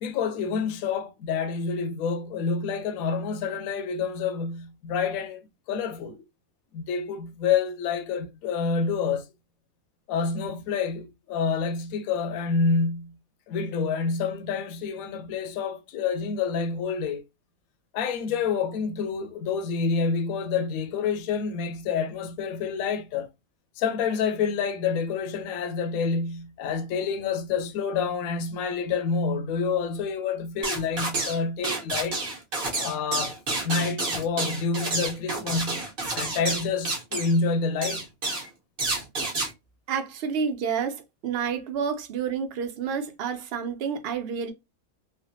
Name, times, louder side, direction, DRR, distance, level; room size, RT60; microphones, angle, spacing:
voice 1, 0.0-6.2 6.7-9.3 10.1-13.2 13.5-17.2 17.9-23.3 23.8-32.2 32.7-33.4 33.6-35.9 36.1-38.0, left 5 dB, 80° left, 1.0 m, -28 dB
sound 1, 30.6-31.4 31.6-37.4 37.8-38.5 38.8-39.5, right 2 dB, 40° right, 1.1 m, -29 dB
voice 2, 39.9-44.5, right 6 dB, 55° right, 0.7 m, -29 dB
3.3 x 2.1 x 2.6 m
omnidirectional pair, 1.5 m